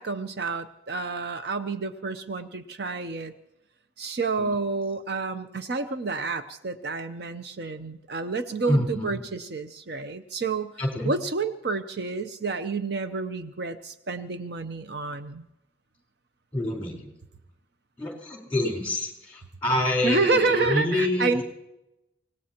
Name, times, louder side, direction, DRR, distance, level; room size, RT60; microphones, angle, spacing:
voice 1, 0.0-3.3 4.0-10.7 11.0-15.4 20.0-21.4, right 4 dB, 60° right, 9 dB, 0.7 m, -29 dB
voice 2, 8.7-9.1 10.8-11.1 16.5-17.1 18.0-21.4, left 1 dB, 10° left, 0 dB, 4.1 m, -27 dB
25.0 x 18.5 x 2.9 m, 0.89 s
head